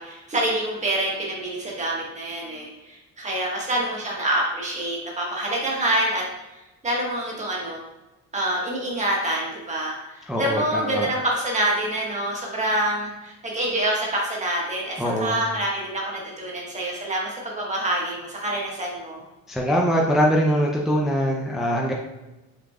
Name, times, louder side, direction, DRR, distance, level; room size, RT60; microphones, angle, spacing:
voice 1, 0.0-6.2 6.8-7.8 8.3-19.2, right 1 dB, 20° right, -2 dB, 1.4 m, -26 dB
voice 2, 10.3-11.1 15.0-15.4 19.5-21.9, equal, ahead, -2 dB, 0.5 m, -22 dB
6.1 x 3.7 x 2.3 m, 1.0 s
cardioid pair, 130°, 31 cm